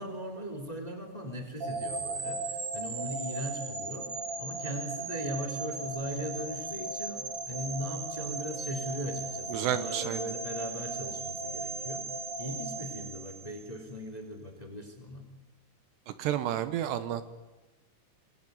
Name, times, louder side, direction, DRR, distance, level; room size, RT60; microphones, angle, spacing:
voice 1, 0.0-4.1 4.4-12.0 12.4-15.3, equal, 10° left, 6 dB, 2.6 m, -39 dB
sound 1, 1.6-13.7, right 3 dB, 35° right, 3.1 m, -37 dB
voice 2, 9.5-10.3 16.1-17.2, right 11 dB, 70° right, 12 dB, 2.9 m, -31 dB
26.5 x 20.0 x 9.5 m, 1.1 s
omnidirectional pair, 5.5 m